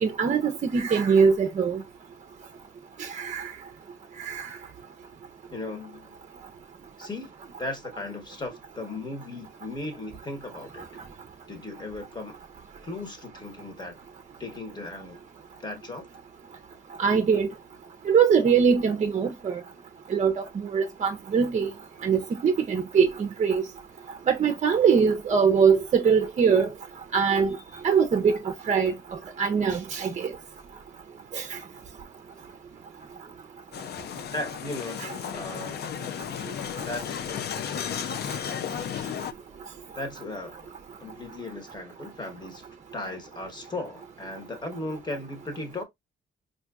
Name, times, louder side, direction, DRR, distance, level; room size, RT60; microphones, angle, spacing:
voice 1, 0.0-1.8 3.0-3.5 4.2-4.6 17.0-17.5 18.1-19.6 20.1-21.7 22.0-23.6 24.3-26.7 27.1-27.6 27.8-28.9 29.4-30.3 31.3-31.6 35.0-35.1, right 6 dB, 35° right, 0.5 m, -22 dB
voice 2, 5.5-6.1 7.0-7.3 7.6-10.9 11.5-12.3 12.8-14.0 14.4-15.2 15.6-16.1 34.3-35.0 35.3-35.8 36.8-37.2 39.9-40.7 41.0-42.6 42.9-45.8, left 2 dB, 20° left, 1.2 m, -36 dB
sound 1, 33.7-39.3, left 9 dB, 55° left, 0.4 m, -34 dB
4.3 x 2.6 x 2.4 m
cardioid pair, 90°, 20 cm